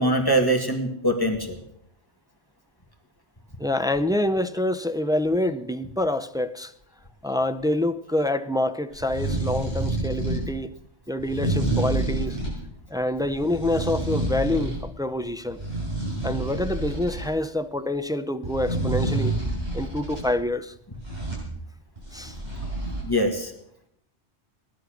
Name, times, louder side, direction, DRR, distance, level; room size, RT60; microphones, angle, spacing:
voice 1, 0.0-1.6 23.0-23.5, right 1 dB, 20° left, 1.9 m, -23 dB
voice 2, 3.6-6.7 7.2-10.7 11.1-12.4 12.9-15.6 16.2-19.4 19.7-20.7 22.1-22.4, left 1 dB, 5° right, 0.4 m, -26 dB
sound 1, 8.9-10.5 11.2-12.6 13.3-14.8 15.2-17.3 18.4-20.3 20.9-21.5 22.0-23.0, right 2 dB, 40° right, 6.7 m, -28 dB
17.0 x 11.0 x 6.5 m
omnidirectional pair, 1.2 m